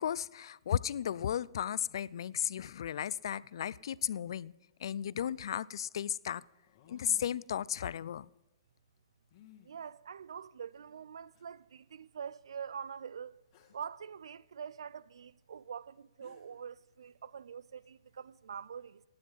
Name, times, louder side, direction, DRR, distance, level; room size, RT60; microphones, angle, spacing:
voice 1, 0.0-4.5 4.8-6.4 6.9-8.3, left 9 dB, 65° left, 0.4 m, -35 dB
sound 1, 6.7-7.5 9.3-9.7 10.7-10.8 11.3-11.4 13.5-13.9 15.8-15.9 16.2-16.7, left 10 dB, 40° left, 2.1 m, -59 dB
voice 2, 9.6-13.4 13.7-19.0, right 7 dB, 75° right, 0.4 m, -45 dB
18.0 x 9.7 x 5.5 m
hypercardioid pair, 135°, 3 cm